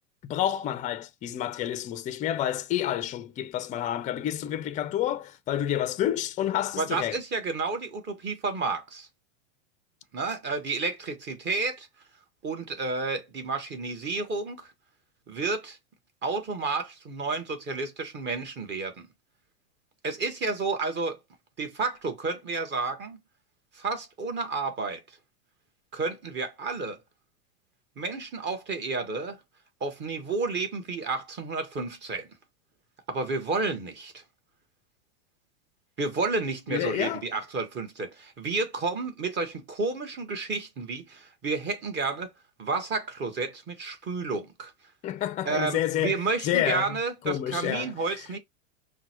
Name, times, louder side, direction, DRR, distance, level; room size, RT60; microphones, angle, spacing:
voice 1, 0.2-7.2 36.7-37.2 45.0-46.2 46.4-47.0 47.2-47.9, left 12 dB, 20° left, 0.4 m, -29 dB
voice 2, 6.8-9.1 10.1-11.9 12.4-14.7 15.3-15.8 16.2-18.9 20.0-21.2 21.6-23.2 23.7-25.0 25.9-27.0 28.0-29.4 29.8-32.3 33.1-34.2 36.0-42.3 42.6-44.7 45.4-48.4, right 3 dB, 25° right, 1.2 m, -31 dB
5.8 x 2.2 x 2.9 m
hypercardioid pair, 120°, 39 cm